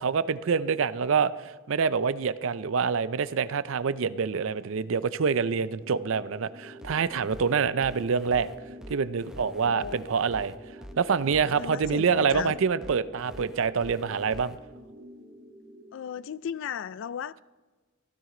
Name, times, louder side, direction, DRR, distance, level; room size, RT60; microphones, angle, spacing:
voice 1, 0.0-8.5 8.9-10.5 11.0-14.6, right 6 dB, 65° right, 0.5 m, -26 dB
sound 1, 5.8-15.8, equal, 35° right, 2.4 m, -48 dB
sound 2, 6.8-14.6, equal, 5° right, 0.6 m, -46 dB
voice 2, 9.6-10.0 11.5-12.5 15.9-17.4, left 8 dB, 60° left, 0.3 m, -35 dB
15.5 x 13.5 x 3.8 m
head